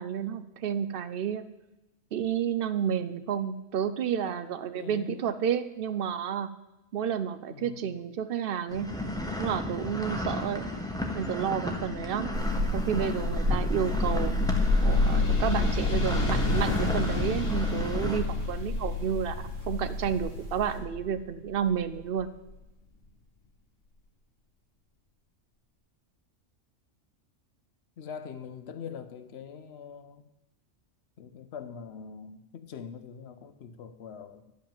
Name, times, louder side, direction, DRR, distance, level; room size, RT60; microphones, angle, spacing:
voice 1, 0.0-1.4 2.1-6.5 6.9-8.9 9.4-10.6 11.1-12.3 12.7-14.5 14.8-22.3, right 8 dB, 60° right, 12 dB, 0.7 m, -31 dB
voice 2, 4.8-5.4 7.5-8.0 28.0-30.2 31.2-34.5, left 7 dB, 60° left, 11 dB, 0.9 m, -43 dB
sound 1, 8.7-18.2, left 1 dB, 5° left, 0.9 m, -34 dB
sound 2, 11.9-22.5, left 3 dB, 80° left, 1.8 m, -30 dB
sound 3, 12.3-20.8, left 1 dB, 75° right, 2.0 m, -33 dB
10.5 x 5.3 x 7.4 m, 0.97 s
omnidirectional pair, 1.3 m